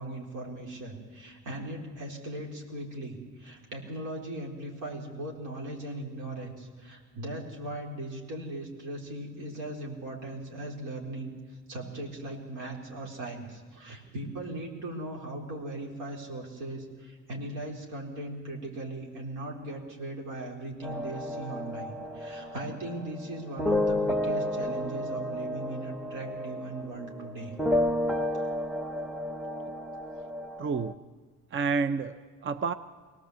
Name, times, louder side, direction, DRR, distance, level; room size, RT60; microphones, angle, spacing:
voice 1, 0.0-11.3 11.7-27.5, right 1 dB, 90° right, -1 dB, 4.3 m, -38 dB
sound 1, 20.8-30.9, left 1 dB, ahead, 0.8 m, -32 dB
voice 2, 30.6-31.0 31.5-32.7, right 5 dB, 40° right, 12 dB, 0.7 m, -29 dB
23.0 x 18.0 x 8.1 m, 1.4 s
cardioid pair, 90°, 30 cm